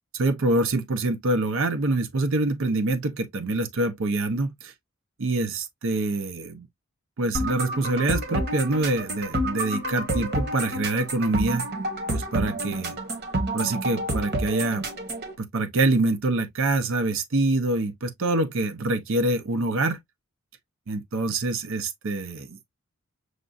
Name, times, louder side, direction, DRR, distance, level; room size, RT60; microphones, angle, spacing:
voice 1, 0.1-4.7 5.2-6.7 7.2-11.6 12.1-13.0 13.5-14.8 15.4-20.0 20.9-22.6, right 2 dB, 65° right, 0.7 m, -25 dB
sound 1, 7.3-15.3, right 1 dB, 50° right, 1.2 m, -29 dB
6.4 x 2.4 x 2.5 m
head